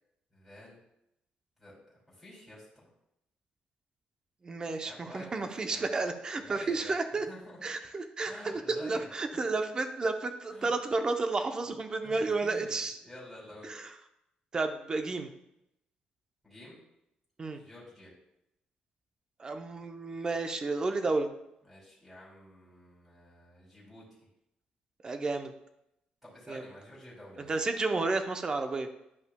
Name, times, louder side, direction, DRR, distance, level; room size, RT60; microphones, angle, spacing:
voice 1, 0.3-0.8 1.6-1.7 2.1-2.9 4.8-5.8 6.4-7.6 8.3-9.4 10.5-10.8 11.6-11.7 12.0-12.7 13.0-13.7 16.4-16.8 17.5-18.1 21.6-24.0 26.2-27.5, left 1 dB, 5° right, -6 dB, 2.8 m, -50 dB
voice 2, 4.4-7.3 7.6-13.0 13.7-13.9 14.5-15.3 17.4-17.6 19.4-21.3 25.0-25.5 26.5-26.6 27.5-28.9, right 3 dB, 25° right, 7 dB, 0.7 m, -31 dB
10.5 x 5.5 x 2.3 m, 0.83 s
cardioid pair, 135°, 3 cm